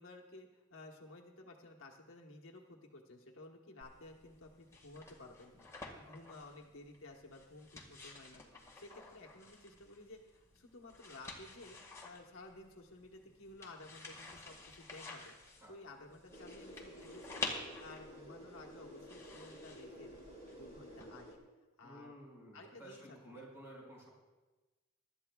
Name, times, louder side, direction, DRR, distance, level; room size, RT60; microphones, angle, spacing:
voice 1, 0.0-5.7 6.0-8.4 8.7-15.3 15.7-17.5 17.8-20.2 20.5-21.3 21.8-22.1 22.5-23.5, left 2 dB, 60° left, 0 dB, 1.1 m, -54 dB
sound 1, 3.8-21.0, left 3 dB, 15° left, 1.6 m, -50 dB
sound 2, 16.3-21.4, equal, 30° right, 2.2 m, -52 dB
voice 2, 21.8-24.1, right 1 dB, 15° right, -5 dB, 4.9 m, -53 dB
24.5 x 12.0 x 2.3 m, 1.2 s
head